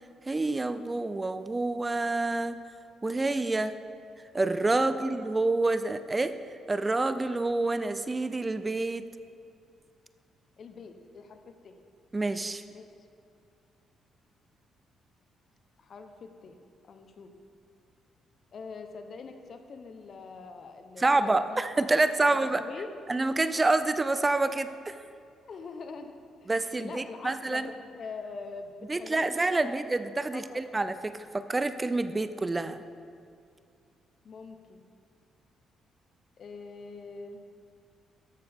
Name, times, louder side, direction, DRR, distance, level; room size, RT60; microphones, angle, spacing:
voice 1, 0.3-2.6 3.0-3.8 4.3-6.3 6.7-9.0 12.1-12.6 21.0-22.6 23.1-25.0 26.5-27.7 28.9-32.8, right 2 dB, 20° right, 12 dB, 0.4 m, -27 dB
voice 2, 4.8-5.1 10.6-11.8 12.7-13.1 15.8-16.5 16.8-17.3 18.5-21.6 22.2-22.9 25.5-26.1 26.4-26.5 26.8-29.8 30.3-30.7 34.2-34.8 36.4-37.4, left 4 dB, 50° left, 6 dB, 0.8 m, -44 dB
13.0 x 6.7 x 3.5 m, 2.3 s
cardioid pair, 90°, 0 cm